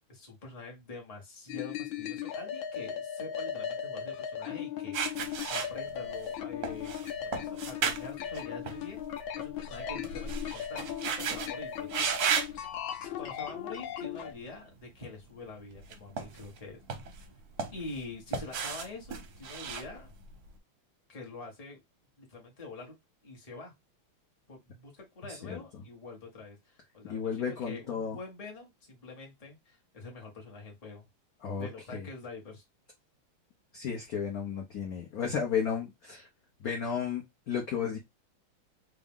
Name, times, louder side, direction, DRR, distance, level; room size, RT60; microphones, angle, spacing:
voice 1, 0.1-9.0 9.4-12.2 13.0-16.8 17.7-20.1 21.1-21.8 22.2-22.9 23.2-23.7 24.5-31.1 31.6-32.6, left 3 dB, 20° left, 1.1 m, -46 dB
sound 1, 1.5-14.3, left 9 dB, 75° left, 1.4 m, -38 dB
sound 2, 4.9-6.3 6.6-9.2 9.5-11.5 11.9-12.6 13.2-13.5 15.8-16.6 16.9-18.0 18.3-20.5, right 6 dB, 60° right, 1.0 m, -34 dB
voice 2, 27.1-28.2 31.4-32.1 33.7-36.3 36.6-38.0, left 7 dB, 60° left, 1.0 m, -33 dB
3.5 x 2.7 x 3.5 m
omnidirectional pair, 2.4 m